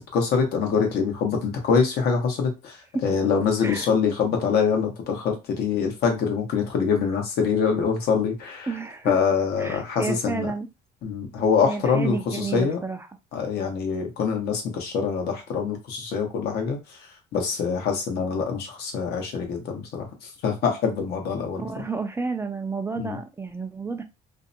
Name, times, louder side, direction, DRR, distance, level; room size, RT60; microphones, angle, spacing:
voice 1, 0.1-2.8 3.0-8.7 9.0-10.5 11.0-12.8 13.3-16.8 17.3-21.6 23.0-23.2, left 6 dB, 70° left, 3 dB, 0.9 m, -24 dB
voice 2, 8.7-9.2 9.6-10.7 11.6-13.1 21.6-24.0, right 4 dB, 15° right, 6 dB, 0.3 m, -31 dB
2.6 x 2.1 x 2.6 m, 0.26 s
cardioid pair, 110°, 17 cm